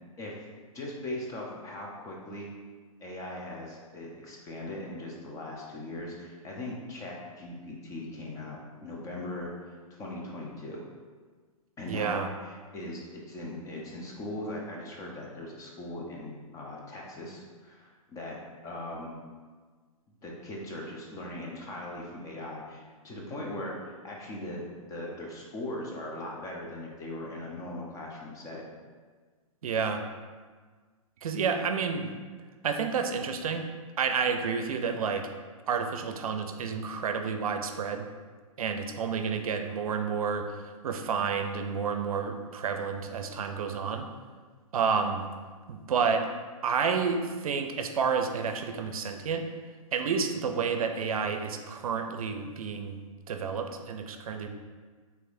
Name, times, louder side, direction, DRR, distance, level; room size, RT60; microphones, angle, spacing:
voice 1, 0.2-2.5 3.0-10.9 11.8-18.4 18.6-19.2 20.2-28.6, left 1 dB, 20° left, -2 dB, 0.7 m, -39 dB
voice 2, 11.9-12.3 29.6-30.0 31.2-32.1 32.6-33.6 34.0-35.3 35.7-38.1 38.6-40.5 40.8-44.1 44.7-45.2 45.7-46.3 46.6-49.4 49.9-53.0 53.3-54.5, right 6 dB, 75° right, 6 dB, 0.5 m, -30 dB
4.7 x 3.5 x 2.6 m, 1.5 s
hypercardioid pair, 135°, 18 cm